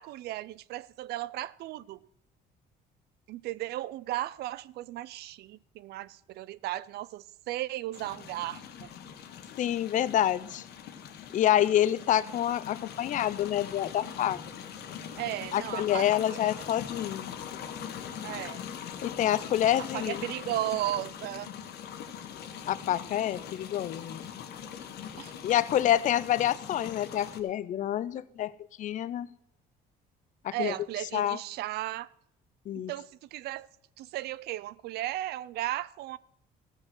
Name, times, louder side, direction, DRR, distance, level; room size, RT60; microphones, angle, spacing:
voice 1, 0.0-2.0 3.3-8.6 15.2-16.5 18.2-18.6 19.9-21.5 25.2-25.4 25.7-25.8 30.5-32.1 32.9-33.7 34.0-36.2, right 15 dB, 70° right, 0.4 m, -35 dB
sound 1, 7.9-27.4, left 8 dB, 70° left, 1.3 m, -42 dB
voice 2, 9.6-10.6 11.3-14.4 15.5-17.3 19.0-20.2 22.7-24.2 25.4-28.5 28.8-29.3 30.4-30.7 31.1-31.4 32.7-32.9, left 11 dB, 50° left, 0.5 m, -27 dB
16.0 x 6.3 x 6.2 m
cardioid pair, 110°, 17 cm